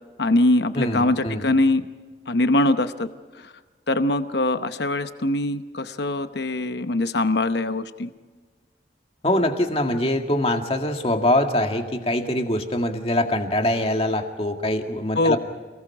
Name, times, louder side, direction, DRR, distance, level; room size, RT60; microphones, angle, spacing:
voice 1, 0.2-1.8 2.3-3.1 3.4-3.5 3.9-8.1 15.1-15.4, left 2 dB, 65° left, 10 dB, 0.9 m, -22 dB
voice 2, 0.8-1.5 9.2-15.4, left 1 dB, 30° left, 4 dB, 2.0 m, -23 dB
29.5 x 19.5 x 4.8 m, 1.4 s
head